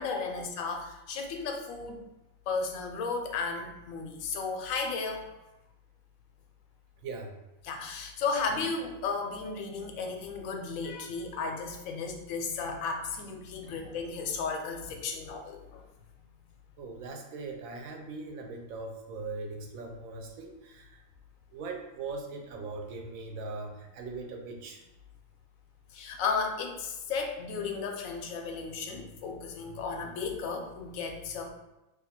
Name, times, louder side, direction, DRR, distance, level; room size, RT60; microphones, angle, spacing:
voice 1, 0.0-2.0 2.5-5.3 7.6-15.8 25.9-31.5, left 4 dB, 85° left, 3 dB, 1.0 m, -34 dB
voice 2, 16.8-21.0 21.5-24.8, right 3 dB, 90° right, 2 dB, 1.0 m, -40 dB
2.7 x 2.3 x 4.1 m, 0.99 s
omnidirectional pair, 1.4 m